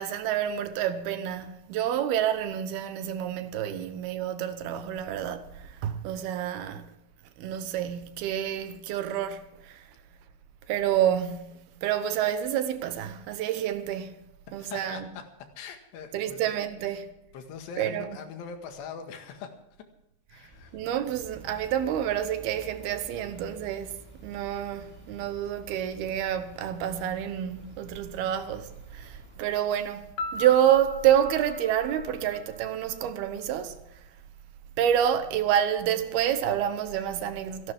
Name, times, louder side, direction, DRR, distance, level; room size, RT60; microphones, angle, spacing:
voice 1, 0.0-6.9 7.4-9.8 10.7-14.1 14.5-15.0 16.1-17.1 17.8-18.1 20.7-24.0 24.2-33.8 34.8-37.7, right 10 dB, 75° right, 2.8 m, -28 dB
voice 2, 14.5-15.2 15.6-16.6 17.3-19.6 20.3-20.8, left 6 dB, 85° left, 3.9 m, -42 dB
sound 1, 20.5-29.4, equal, 15° left, 7.0 m, -54 dB
Piano, 30.2-33.0, left 1 dB, 65° left, 2.3 m, -37 dB
26.5 x 11.5 x 3.5 m
omnidirectional pair, 4.8 m